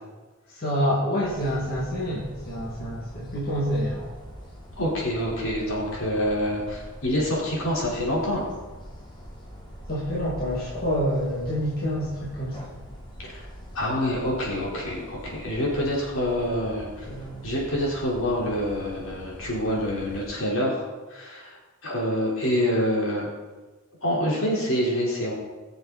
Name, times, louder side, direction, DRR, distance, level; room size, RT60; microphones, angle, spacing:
voice 1, 0.5-4.1 9.9-12.7 17.1-17.5, equal, 45° left, -6 dB, 2.2 m, -27 dB
sound 1, 1.2-20.4, equal, 20° left, 1.8 m, -43 dB
voice 2, 4.8-8.5 13.2-13.4 13.7-17.1 17.4-20.8 21.1-21.6 21.8-23.3 24.0-25.3, equal, 75° left, -4 dB, 4.0 m, -26 dB
19.5 x 7.1 x 4.1 m, 1.3 s
head